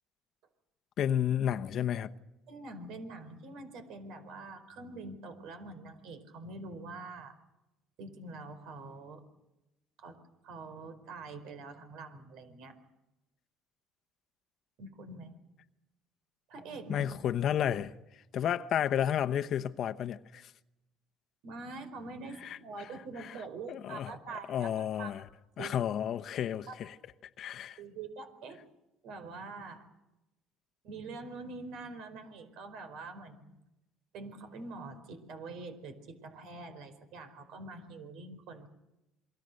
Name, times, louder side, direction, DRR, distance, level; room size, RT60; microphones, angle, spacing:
voice 1, 1.0-2.1 16.9-17.9 18.3-20.5 22.4-22.6 23.2-23.4 23.7-24.1 24.5-25.2 25.6-27.0 27.4-27.8, left 10 dB, 55° left, 0.9 m, -31 dB
voice 2, 2.5-7.3 8.0-9.3 10.0-12.8 14.8-15.3 16.5-17.0 21.4-25.1 25.6-25.7 26.7-26.8 27.8-28.6 29.0-29.9 30.8-33.6 34.1-38.7, right 3 dB, 70° right, 4.7 m, -45 dB
27.5 x 23.0 x 6.6 m
cardioid pair, 105°, 0 cm